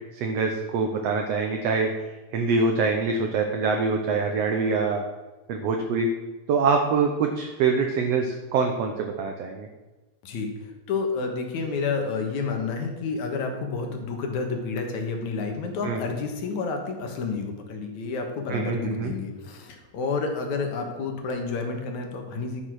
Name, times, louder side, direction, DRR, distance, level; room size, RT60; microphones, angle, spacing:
voice 1, 0.1-1.9 2.3-5.0 5.5-6.1 6.5-9.7 15.8-16.0 18.5-19.1, right 4 dB, 70° right, 3 dB, 1.9 m, -24 dB
voice 2, 10.2-22.6, left 4 dB, 80° left, 3 dB, 2.8 m, -30 dB
12.0 x 6.0 x 6.3 m, 1.2 s
omnidirectional pair, 3.3 m